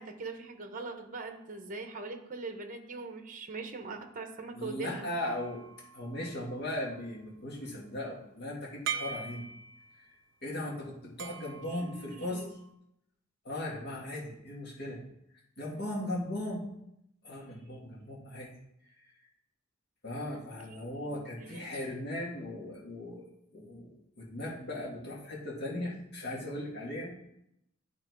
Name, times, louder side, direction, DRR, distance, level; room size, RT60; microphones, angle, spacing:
voice 1, 0.0-5.1 11.6-12.5 21.0-21.9, right 3 dB, 40° right, 6 dB, 0.9 m, -42 dB
voice 2, 4.6-5.6 5.9-9.5 10.4-12.4 13.4-15.0 15.6-16.6 17.2-18.5 20.0-23.3 23.5-27.1, left 1 dB, 55° left, -4 dB, 2.1 m, -38 dB
sound 1, 5.2-6.9 8.8-10.1 11.2-12.7, right 7 dB, 60° right, 0.4 m, -42 dB
10.5 x 3.8 x 4.7 m, 0.79 s
head